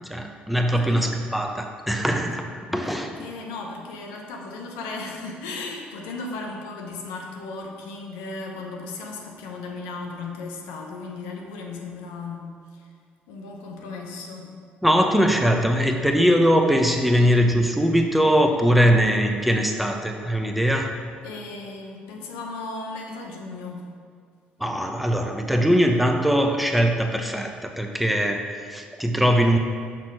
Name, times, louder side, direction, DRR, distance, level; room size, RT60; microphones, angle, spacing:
voice 1, 0.1-3.1 14.8-21.0 24.6-29.6, equal, ahead, 3 dB, 0.8 m, -21 dB
voice 2, 2.6-12.9 13.3-14.5 21.2-23.9, left 3 dB, 75° left, 1 dB, 0.8 m, -36 dB
6.0 x 5.7 x 4.7 m, 2.1 s
hypercardioid pair, 50°, 5 cm